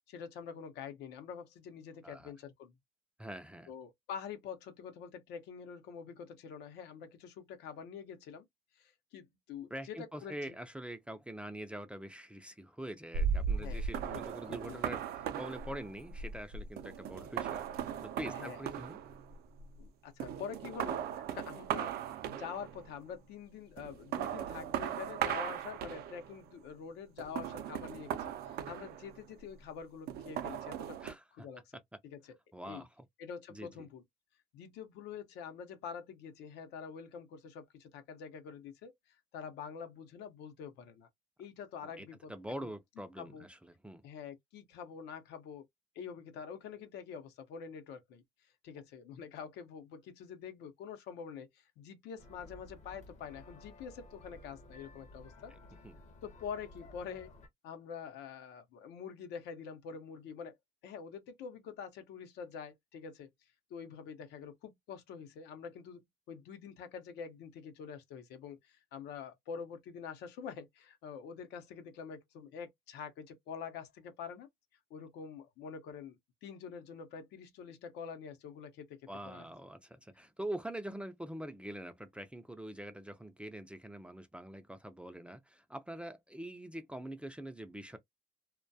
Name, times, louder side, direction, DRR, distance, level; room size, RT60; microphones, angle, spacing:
voice 1, 0.1-2.7 3.7-8.5 8.8-10.5 13.5-13.8 14.1-14.8 18.3-18.6 19.8-31.0 31.3-31.6 32.0-32.4 32.6-32.8 33.2-34.0 34.5-41.1 41.4-42.3 42.6-42.7 43.2-43.5 44.0-45.6 46.0-48.2 48.6-55.5 56.2-57.4 57.6-60.6 60.8-63.3 63.7-74.5 74.9-79.0 79.2-79.5, left 7 dB, 80° left, 0.7 m, -46 dB
voice 2, 3.2-3.7 9.7-19.0 31.0-31.2 32.5-32.9 33.5-33.7 41.8-44.0 55.5-55.6 55.8-56.0 79.1-88.0, right 1 dB, 5° right, 0.3 m, -44 dB
sound 1, 13.1-19.9 20.2-22.9 23.8-26.4 27.2-29.4 30.1-31.1, right 7 dB, 70° right, 0.4 m, -38 dB
sound 2, 52.2-57.5, left 2 dB, 45° left, 0.7 m, -55 dB
2.2 x 2.2 x 2.6 m
cardioid pair, 110°, 17 cm